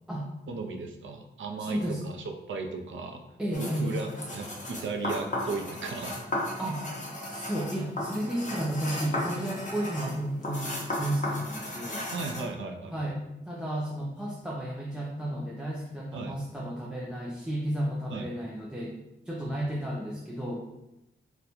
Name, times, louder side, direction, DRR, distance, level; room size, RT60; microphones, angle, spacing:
voice 1, 0.5-3.2 3.6-6.2 12.1-13.1 16.1-16.3 18.1-18.3, right 4 dB, 80° right, 4 dB, 0.5 m, -36 dB
voice 2, 1.6-2.0 3.4-3.9 6.6-6.8 7.3-12.0 12.9-19.0 19.3-20.6, right 1 dB, 5° right, -3 dB, 0.3 m, -33 dB
sound 1, 3.5-12.5, left 1 dB, 40° left, 0.8 m, -35 dB
3.9 x 2.2 x 2.9 m, 0.92 s
wide cardioid pair, 125°, 20 cm